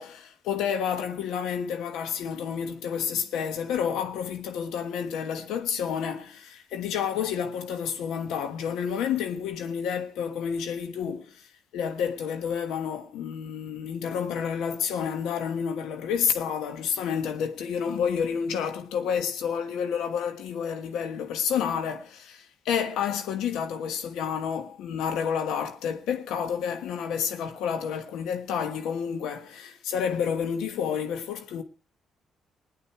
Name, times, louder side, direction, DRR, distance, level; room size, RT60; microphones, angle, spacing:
voice 1, 0.0-31.6, left 7 dB, 90° left, 1.2 m, -30 dB
17.0 x 11.0 x 4.6 m
cardioid pair, 90°, 0 cm